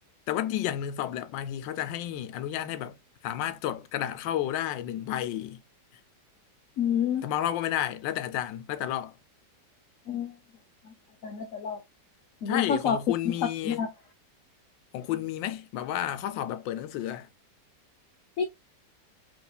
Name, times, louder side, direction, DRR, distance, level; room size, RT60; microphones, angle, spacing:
voice 1, 0.3-3.0 3.2-5.6 7.2-9.1 12.5-13.8 14.9-17.3, left 11 dB, 90° left, 1.3 m, -31 dB
voice 2, 6.8-7.2 10.1-10.3 11.2-11.8 12.4-13.0 13.6-13.9 18.4-18.5, left 7 dB, 65° left, 0.8 m, -28 dB
4.7 x 2.9 x 2.2 m
omnidirectional pair, 1.9 m